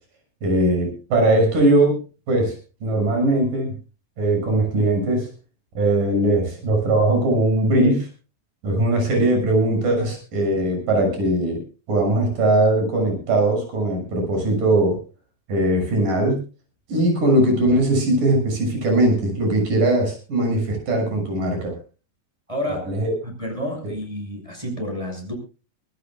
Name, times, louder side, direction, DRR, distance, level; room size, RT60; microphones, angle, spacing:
voice 1, 0.4-2.0 2.3-2.6 2.8-3.7 4.2-5.3 5.7-8.1 8.6-11.6 11.9-15.0 15.5-16.4 16.9-21.8 22.7-23.1, right 1 dB, 70° right, 3 dB, 8.1 m, -20 dB
voice 2, 22.5-25.3, left 1 dB, 10° right, 1 dB, 6.0 m, -30 dB
24.5 x 16.0 x 2.4 m, 0.34 s
omnidirectional pair, 4.0 m